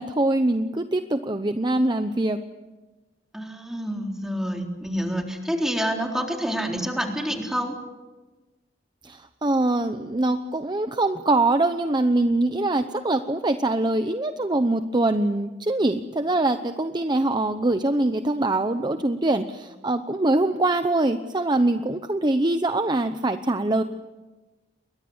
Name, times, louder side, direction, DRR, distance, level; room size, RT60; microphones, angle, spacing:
voice 1, 0.0-2.4 9.0-23.8, right 2 dB, 25° right, 9 dB, 0.9 m, -23 dB
voice 2, 3.3-7.8, equal, 5° right, 1 dB, 3.8 m, -28 dB
29.5 x 23.0 x 7.2 m, 1.2 s
head